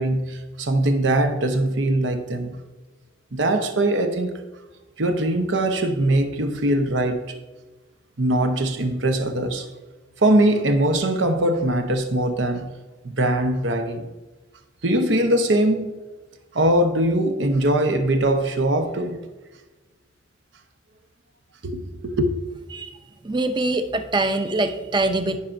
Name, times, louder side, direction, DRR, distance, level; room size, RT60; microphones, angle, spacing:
voice 1, 0.0-2.6 3.3-4.3 5.0-7.3 8.2-9.7 10.2-12.7 13.0-14.1 14.8-15.9 16.5-19.2 21.6-22.3, right 1 dB, 85° right, 0.9 m, -21 dB
voice 2, 23.2-25.4, right 2 dB, 25° right, 0.5 m, -23 dB
16.0 x 5.7 x 2.6 m
head